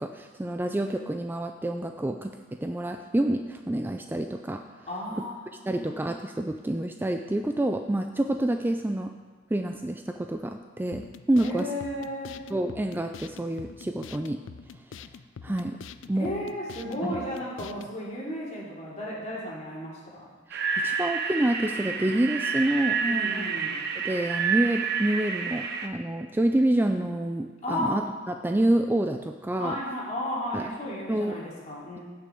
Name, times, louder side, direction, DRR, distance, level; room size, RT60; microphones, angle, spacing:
voice 1, 0.0-4.6 5.7-9.1 9.5-11.7 12.5-14.4 15.4-15.8 16.1-16.3 20.5-20.6 20.8-23.4 24.0-29.8 30.5-30.7 31.1-31.4, right 1 dB, 10° right, 5 dB, 0.3 m, -28 dB
voice 2, 4.9-5.9 11.4-12.3 16.1-20.3 23.1-23.8 27.6-28.0 29.6-32.0, left 1 dB, 35° left, -5 dB, 2.8 m, -34 dB
sound 1, 10.9-17.9, left 6 dB, 70° left, 0.4 m, -45 dB
sound 2, 20.5-25.9, right 5 dB, 55° right, 0.8 m, -29 dB
15.5 x 6.1 x 4.5 m, 1.4 s
head